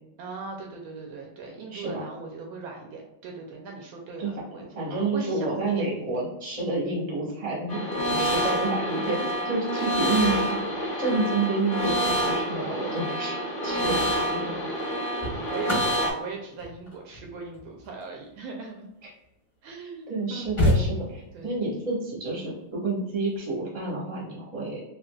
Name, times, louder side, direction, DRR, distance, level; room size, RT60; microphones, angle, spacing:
voice 1, 0.2-6.2 13.7-14.6 15.0-18.9 19.6-20.5 21.3-21.6, right 4 dB, 75° right, 1 dB, 1.3 m, -40 dB
voice 2, 1.7-2.0 4.2-4.3 4.7-14.5 20.1-24.8, right 2 dB, 25° right, -5 dB, 0.8 m, -29 dB
sound 1, 7.7-16.1, equal, 60° left, 0.5 m, -27 dB
sound 2, 13.6-13.9 14.8-19.4 19.9-20.0 20.2-21.5 23.1-23.4, left 1 dB, 20° left, 1.0 m, -30 dB
3.7 x 2.8 x 2.2 m, 0.90 s
omnidirectional pair, 2.4 m